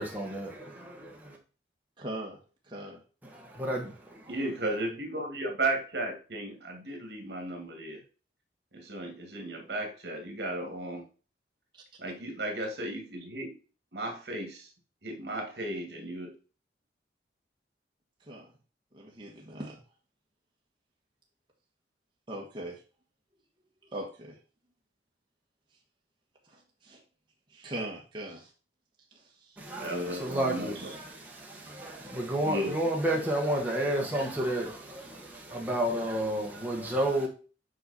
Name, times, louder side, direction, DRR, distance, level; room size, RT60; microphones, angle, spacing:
voice 1, 0.0-1.4 3.2-4.3 29.6-37.3, right 1 dB, 10° right, 1.4 m, -31 dB
voice 2, 2.0-2.4 2.7-3.0 18.3-18.5 18.9-19.8 22.3-22.8 23.9-24.3 26.5-27.0 27.5-28.5 29.1-29.6 30.7-30.9, right 1 dB, 25° right, 1.4 m, -40 dB
voice 3, 4.3-8.0 8.7-11.0 12.0-13.6 13.9-14.7 15.0-16.3 29.8-30.9 32.4-32.8, right 1 dB, 65° right, 2.1 m, -35 dB
7.9 x 5.0 x 4.2 m
head